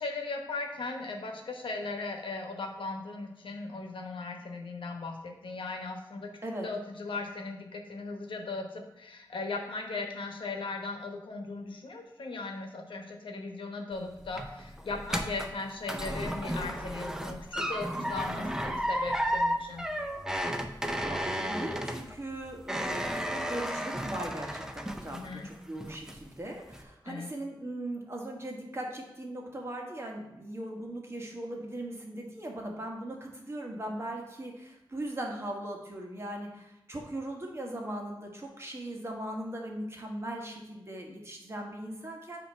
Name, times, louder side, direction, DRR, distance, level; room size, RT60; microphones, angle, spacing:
voice 1, 0.0-6.3 6.6-19.9 25.1-25.5 27.1-27.3, left 3 dB, 90° left, 3 dB, 0.9 m, -38 dB
sound 1, 13.9-25.5 25.8-26.3 26.7-26.8, equal, 5° right, 0.6 m, -33 dB
voice 2, 21.0-42.4, right 1 dB, 30° right, 0 dB, 1.3 m, -39 dB
8.4 x 2.9 x 5.5 m, 0.93 s
wide cardioid pair, 90°, 8 cm